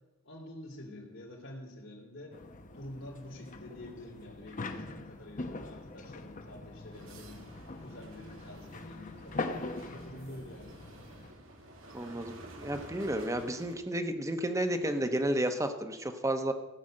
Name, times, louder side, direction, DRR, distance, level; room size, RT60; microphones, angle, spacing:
voice 1, 0.2-2.4 2.7-7.4 7.8-10.8, left 1 dB, 70° left, -3 dB, 3.0 m, -47 dB
throwing stuff, 2.3-11.3, left 2 dB, 40° left, 1.0 m, -42 dB
sound 1, 6.9-13.7, right 1 dB, 90° right, 2.3 m, -51 dB
voice 2, 11.9-16.5, right 1 dB, 15° right, 7 dB, 1.0 m, -32 dB
16.0 x 6.0 x 7.7 m, 1.0 s
head